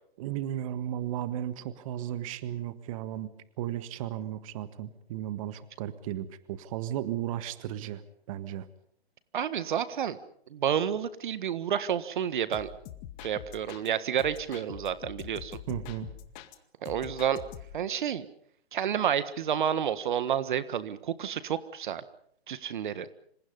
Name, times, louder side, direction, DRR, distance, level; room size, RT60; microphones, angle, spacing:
voice 1, 0.2-3.3 3.6-8.0 8.3-8.7 15.7-16.1, right 11 dB, 35° right, 12 dB, 1.6 m, -35 dB
voice 2, 9.3-10.2 10.5-12.7 13.2-15.6 16.8-17.4 17.7-18.3 18.7-22.0 22.5-23.1, right 9 dB, 50° right, 13 dB, 1.6 m, -30 dB
sound 1, 12.5-13.9 14.2-16.6 16.8-17.9, left 11 dB, 25° left, 2.0 m, -44 dB
27.0 x 26.5 x 5.5 m, 0.66 s
hypercardioid pair, 140°, 31 cm